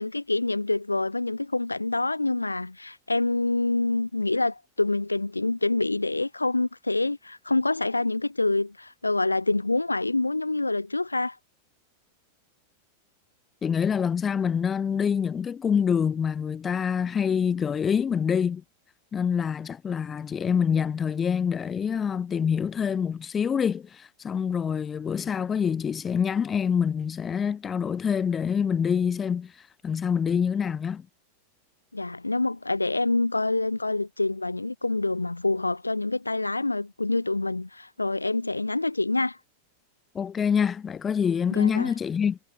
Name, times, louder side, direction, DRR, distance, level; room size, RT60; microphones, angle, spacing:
voice 1, 0.0-11.4 31.9-39.4 41.5-41.9, left 2 dB, 85° left, 0.7 m, -26 dB
voice 2, 13.6-18.6 19.1-29.5 29.8-31.1 40.1-42.4, left 7 dB, 20° left, 2.3 m, -26 dB
figure-of-eight pair, 90°, 0 cm